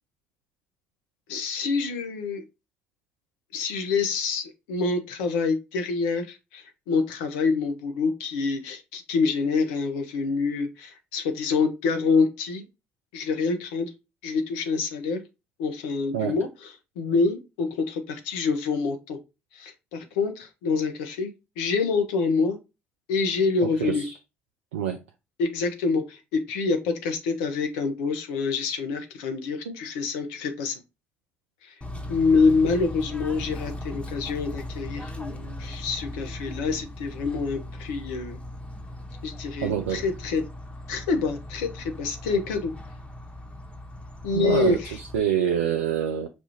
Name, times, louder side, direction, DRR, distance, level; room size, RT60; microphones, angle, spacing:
voice 1, 1.3-2.4 3.5-12.6 13.1-13.9 14.2-15.2 15.6-16.5 17.0-19.2 19.5-21.3 21.6-22.6 23.1-24.0 25.4-30.8 32.1-38.4 39.2-40.4 40.9-42.7 44.2-44.9, left 4 dB, 80° left, 0.7 m, -26 dB
voice 2, 23.6-24.2 24.7-25.0 29.7-29.8 39.6-40.0 44.3-46.3, right 9 dB, 85° right, 0.4 m, -26 dB
Bird / Train, 31.8-45.2, left 1 dB, 15° left, 1.0 m, -38 dB
5.2 x 2.4 x 2.9 m
hypercardioid pair, 45°, 7 cm